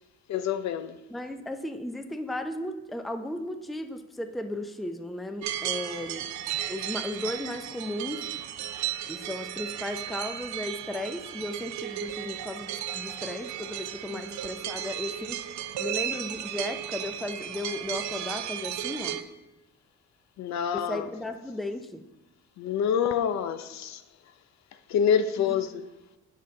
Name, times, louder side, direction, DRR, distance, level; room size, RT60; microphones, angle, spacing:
voice 1, 0.3-0.9 20.4-21.0 22.6-24.0 24.9-25.9, left 8 dB, 65° left, 0.5 m, -27 dB
voice 2, 1.1-6.3 6.7-8.3 9.1-15.4 15.8-19.2 20.7-22.0 25.5-25.6, left 1 dB, ahead, 0.4 m, -35 dB
sound 1, 5.4-19.2, right 11 dB, 70° right, 0.5 m, -35 dB
7.2 x 5.6 x 3.8 m
cardioid pair, 90°, 30 cm